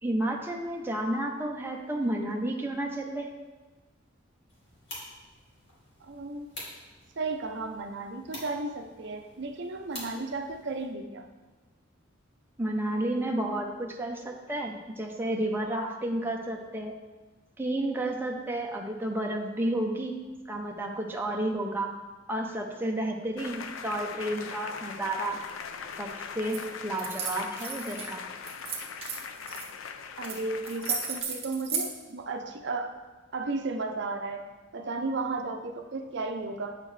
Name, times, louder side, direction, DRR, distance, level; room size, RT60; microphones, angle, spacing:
voice 1, 0.0-3.3 12.6-17.0 17.6-20.2 20.5-21.9 22.3-25.4 26.0-28.2, right 1 dB, 10° right, 0 dB, 0.6 m, -31 dB
sound 1, 4.5-10.9, left 1 dB, 60° left, 2.3 m, -47 dB
voice 2, 6.1-6.5 7.2-11.3 30.2-32.9 33.3-34.4 34.7-36.8, right 3 dB, 60° right, 5 dB, 0.6 m, -34 dB
sound 2, 23.4-31.2, left 6 dB, 75° left, 0.5 m, -41 dB
sound 3, 26.5-26.6 27.0-28.1 28.5-29.7 30.2-30.4 30.6-31.9, right 5 dB, 30° right, 1.2 m, -34 dB
8.7 x 6.8 x 3.2 m, 1.3 s
head